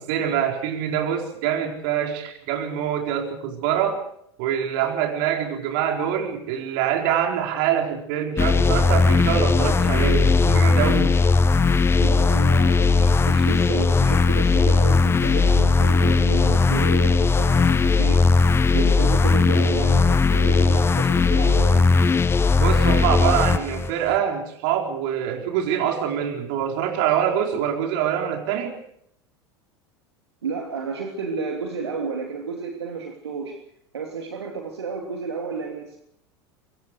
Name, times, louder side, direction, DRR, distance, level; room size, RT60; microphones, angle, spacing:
voice 1, 0.0-4.0 4.4-11.1 22.6-28.8, right 9 dB, 55° right, 3 dB, 4.5 m, -25 dB
sound 1, 8.4-23.9, left 4 dB, 15° left, 1.0 m, -18 dB
voice 2, 12.0-18.2 18.7-21.9 30.4-33.6 33.9-36.0, right 5 dB, 75° right, 2 dB, 3.1 m, -31 dB
25.0 x 23.0 x 4.9 m, 0.70 s
figure-of-eight pair, 80°, 14 cm